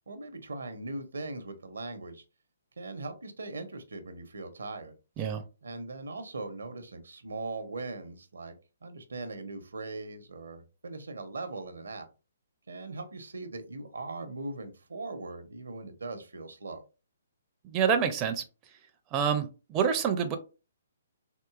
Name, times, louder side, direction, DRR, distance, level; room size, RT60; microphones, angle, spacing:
voice 1, 0.1-2.2 2.8-5.3 5.6-12.1 12.7-16.8, right 3 dB, 80° right, 0.7 m, -40 dB
voice 2, 17.6-18.4 19.1-20.4, right 7 dB, 25° right, 0.4 m, -27 dB
3.7 x 2.6 x 2.4 m
figure-of-eight pair, 135°, 0 cm